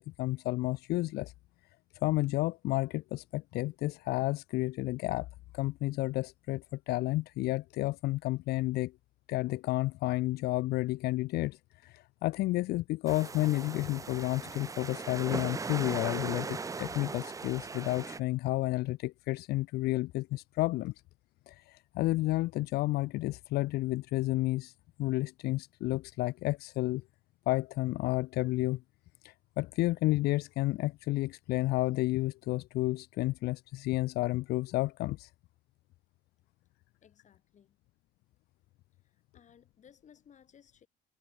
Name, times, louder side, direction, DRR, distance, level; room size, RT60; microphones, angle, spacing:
voice 1, 0.0-1.3 2.0-5.3 5.5-8.9 9.3-20.9 21.5-24.7 25.0-27.0 27.5-28.8 29.2-35.3, left 18 dB, 70° left, 0.4 m, -31 dB
sound 1, 13.1-18.2, right 4 dB, 20° right, 0.6 m, -39 dB
voice 2, 37.0-37.8 39.0-40.9, left 8 dB, 45° left, 4.9 m, -60 dB
cardioid pair, 110°, 17 cm